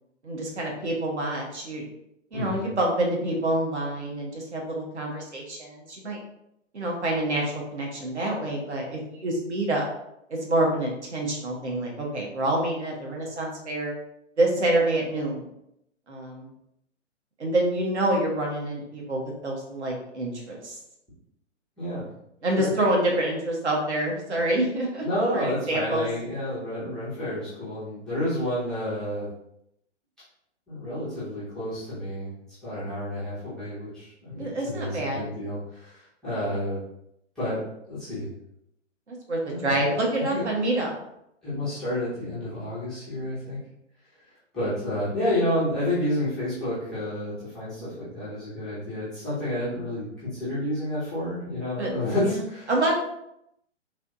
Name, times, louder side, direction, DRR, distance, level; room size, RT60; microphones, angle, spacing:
voice 1, 0.2-1.8 2.3-6.2 6.7-9.9 10.3-13.9 14.4-15.4 16.1-16.5 17.4-20.7 22.4-25.1 25.3-26.1 34.4-35.3 39.1-40.9 51.8-51.9 52.2-52.9, right 1 dB, 65° right, -1 dB, 1.3 m, -27 dB
voice 2, 2.3-2.6 21.8-22.0 22.5-22.7 25.0-29.3 30.7-32.3 32.6-36.8 37.4-37.6 37.9-38.3 39.5-39.8 40.3-40.4 41.4-43.6 44.5-52.7, left 1 dB, ahead, -15 dB, 0.5 m, -30 dB
4.0 x 2.9 x 2.6 m, 0.79 s
figure-of-eight pair, 125°, 37 cm